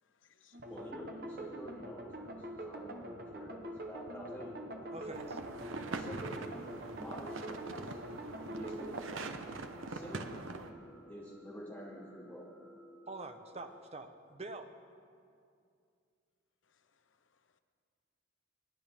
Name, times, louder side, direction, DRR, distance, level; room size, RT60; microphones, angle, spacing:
voice 1, 0.0-0.7 16.6-17.6, left 8 dB, 75° left, 0.8 m, -71 dB
sound 1, 0.5-9.0, right 1 dB, 50° right, 1.1 m, -45 dB
voice 2, 0.7-2.4 2.6-5.4 5.7-6.5 7.0-8.0 8.5-9.5 9.9-10.6 11.1-12.5, equal, 10° left, 2.9 m, -48 dB
sound 2, 0.8-13.8, left 1 dB, 10° right, 1.0 m, -57 dB
voice 3, 4.9-5.4 13.1-14.7, right 2 dB, 30° right, 0.7 m, -45 dB
sound 3, 5.1-10.7, right 3 dB, 85° right, 0.8 m, -43 dB
28.5 x 10.5 x 3.6 m
head